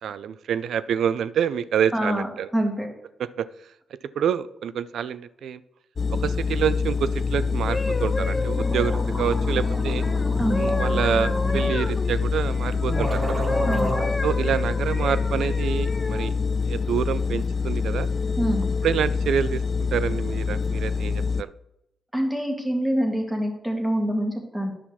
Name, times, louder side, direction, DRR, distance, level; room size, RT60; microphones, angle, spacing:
voice 1, 0.0-2.5 3.4-3.5 4.2-5.6 6.1-10.0 10.6-13.4 14.2-16.3 16.7-18.1 18.8-19.6 19.9-21.5, right 8 dB, 80° right, 16 dB, 0.4 m, -27 dB
voice 2, 1.9-2.9 10.4-10.6 13.7-13.9 18.4-18.7 22.1-24.7, equal, 10° right, 2 dB, 2.2 m, -25 dB
sound 1, 6.0-21.4, left 5 dB, 50° left, 0.3 m, -25 dB
sound 2, 7.7-13.0 13.5-16.3 17.0-17.3, left 2 dB, 25° left, 0.9 m, -32 dB
sound 3, 8.2-8.3 8.5-11.7 12.5-12.6 12.9-14.1, right 1 dB, 30° right, 3.3 m, -31 dB
10.0 x 5.8 x 4.1 m, 0.85 s
cardioid pair, 65°, 0 cm